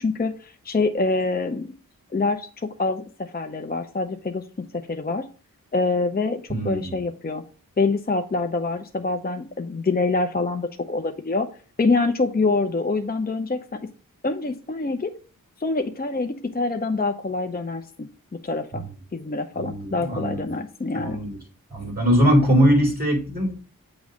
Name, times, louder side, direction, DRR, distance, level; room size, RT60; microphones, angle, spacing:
voice 1, 0.0-1.7 2.1-4.4 4.9-5.2 5.7-7.4 7.8-11.5 11.8-13.8 14.2-15.1 15.6-18.1 18.4-18.8 19.1-21.2, left 3 dB, 25° left, 6 dB, 0.6 m, -25 dB
voice 2, 6.5-6.9 18.7-18.8 19.6-20.4 20.9-21.4 21.7-23.6, equal, 25° right, 2 dB, 3.7 m, -21 dB
8.4 x 3.1 x 6.3 m, 0.38 s
wide cardioid pair, 65°, 35 cm